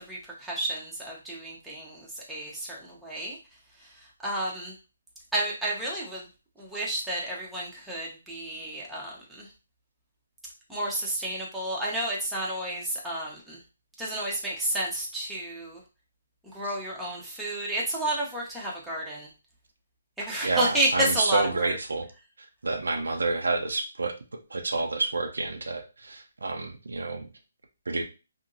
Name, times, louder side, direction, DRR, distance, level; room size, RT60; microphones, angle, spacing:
voice 1, 0.1-3.4 4.2-4.7 5.3-6.2 6.6-9.5 10.7-13.6 14.0-15.8 16.5-19.3 20.2-21.8, right 1 dB, 5° right, -6 dB, 0.8 m, -31 dB
voice 2, 20.4-22.1 22.4-27.3 27.9-28.0, right 3 dB, 85° right, 5 dB, 0.6 m, -29 dB
2.8 x 2.7 x 2.6 m, 0.31 s
hypercardioid pair, 155°, 0 cm